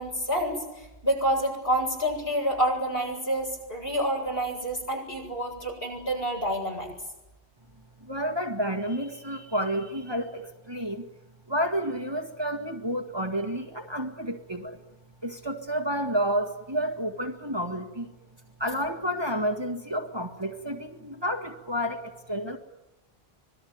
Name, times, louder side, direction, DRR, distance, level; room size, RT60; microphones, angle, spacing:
voice 1, 0.0-6.9, right 1 dB, 65° left, 0 dB, 8.1 m, -28 dB
voice 2, 8.0-11.0 11.5-14.8 15.2-18.1 18.6-22.6, equal, 25° right, 3 dB, 1.9 m, -30 dB
25.5 x 20.5 x 9.5 m, 0.98 s
omnidirectional pair, 1.1 m